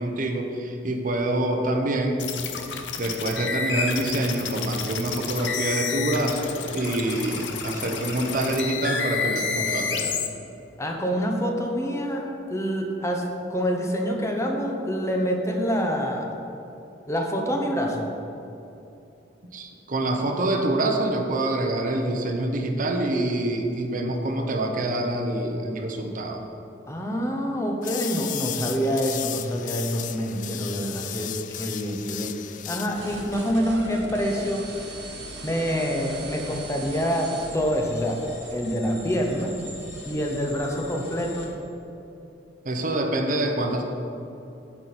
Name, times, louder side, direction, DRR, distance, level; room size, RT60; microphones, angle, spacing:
voice 1, 0.0-2.2 3.0-10.2 19.5-26.4 42.6-43.8, right 1 dB, 50° right, 3 dB, 0.9 m, -26 dB
sound 1, 2.2-10.3, left 5 dB, 80° left, 0.8 m, -30 dB
voice 2, 10.8-16.3 17.1-18.2 26.9-32.4 32.7-34.7 35.4-38.2 38.5-39.6 40.0-41.5, equal, 15° left, 1 dB, 0.9 m, -26 dB
sound 2, 27.8-33.5, left 13 dB, 45° left, 0.3 m, -35 dB
sound 3, 32.9-41.5, right 1 dB, 85° right, 2.0 m, -40 dB
8.9 x 8.5 x 4.3 m, 2.8 s
head